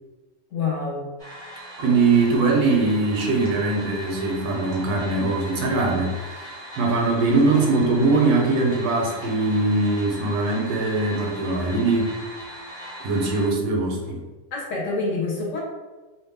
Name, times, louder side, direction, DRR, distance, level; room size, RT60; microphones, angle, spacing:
voice 1, 0.5-1.1 14.5-15.6, left 3 dB, 60° left, -2 dB, 0.9 m, -27 dB
sound 1, 1.2-13.5, right 1 dB, 5° left, 0.6 m, -39 dB
voice 2, 1.8-12.1 13.0-14.2, right 3 dB, 85° right, 0 dB, 1.2 m, -21 dB
2.8 x 2.2 x 3.4 m, 1.2 s
omnidirectional pair, 1.7 m